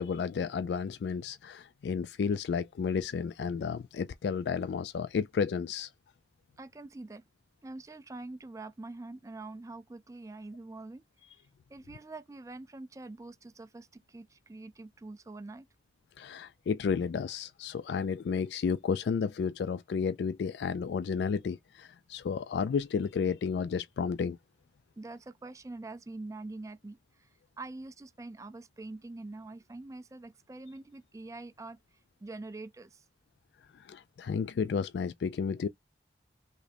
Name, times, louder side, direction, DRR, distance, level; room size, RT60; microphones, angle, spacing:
voice 1, 0.0-5.9 16.2-24.4 33.7-35.7, left 6 dB, 75° left, 0.3 m, -32 dB
voice 2, 6.6-7.2 7.6-11.0 11.7-15.6 25.0-27.3 27.6-33.0, right 2 dB, 20° right, 0.3 m, -45 dB
4.9 x 3.3 x 2.6 m
head